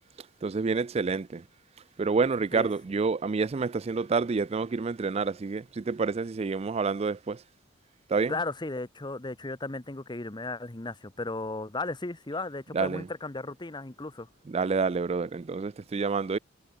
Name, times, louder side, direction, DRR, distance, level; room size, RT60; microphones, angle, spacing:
voice 1, 0.4-1.5 2.0-7.4 8.1-8.4 12.7-13.1 14.5-16.4, right 4 dB, 30° right, 0.4 m, -28 dB
voice 2, 8.3-14.3, left 2 dB, 20° left, 1.0 m, -35 dB
head